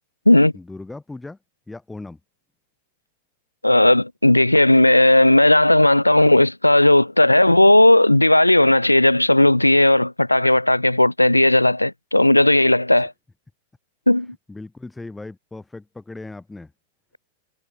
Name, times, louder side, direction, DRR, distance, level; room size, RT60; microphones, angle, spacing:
voice 1, 0.5-1.4 1.7-2.2 13.0-13.1 14.5-16.7, left 2 dB, 10° left, 2.8 m, -37 dB
voice 2, 3.6-13.1 14.1-14.3, left 1 dB, 85° left, 0.7 m, -15 dB
figure-of-eight pair, 90°, 0 cm